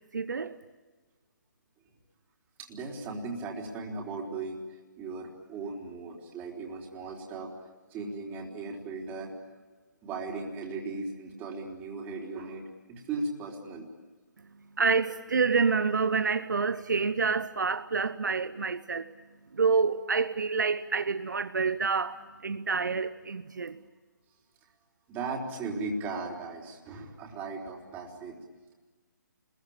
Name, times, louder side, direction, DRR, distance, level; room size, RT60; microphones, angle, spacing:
voice 1, 0.1-0.6 14.8-19.1 19.5-23.8, right 5 dB, 70° right, 0.9 m, -28 dB
voice 2, 2.6-9.3 10.0-12.6 12.9-13.9 25.1-28.4, right 3 dB, 15° right, 4.0 m, -37 dB
30.0 x 22.0 x 8.9 m
figure-of-eight pair, 140°, 10 cm